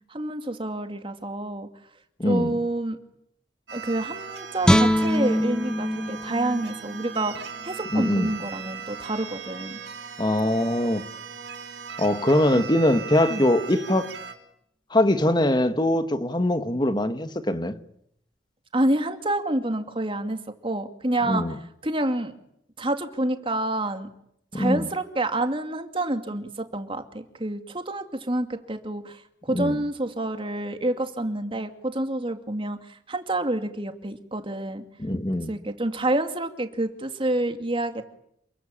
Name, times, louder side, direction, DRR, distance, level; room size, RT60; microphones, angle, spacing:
voice 1, 0.1-1.7 2.2-3.0 3.7-9.8 12.5-12.7 13.3-13.5 18.7-20.4 20.6-21.4 21.8-22.3 22.8-24.1 24.5-34.8 35.5-38.0, right 1 dB, 30° right, 2.6 m, -28 dB
voice 2, 2.2-2.6 7.9-8.3 10.2-11.0 12.0-14.1 14.9-17.8 21.3-21.5 24.5-24.9 29.5-29.8 35.0-35.5, left 1 dB, 25° left, 1.6 m, -22 dB
sound 1, 3.7-14.3, right 6 dB, 85° right, 4.8 m, -38 dB
Guitar, 4.6-7.8 8.2-8.4, equal, 5° left, 1.1 m, -24 dB
28.5 x 22.0 x 8.9 m
head